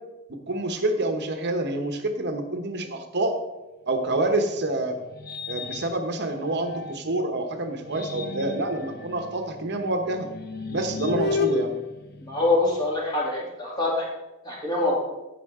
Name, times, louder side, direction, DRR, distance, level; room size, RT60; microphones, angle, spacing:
voice 1, 0.3-3.4 3.9-5.0 5.5-10.3 10.7-11.7, right 2 dB, 55° right, 6 dB, 1.0 m, -27 dB
sound 1, 4.0-7.2 7.7-12.9, left 4 dB, 50° left, 0.6 m, -33 dB
voice 2, 12.2-14.0 14.4-15.0, left 2 dB, 20° left, -5 dB, 2.8 m, -24 dB
15.0 x 5.6 x 3.6 m, 1.0 s
head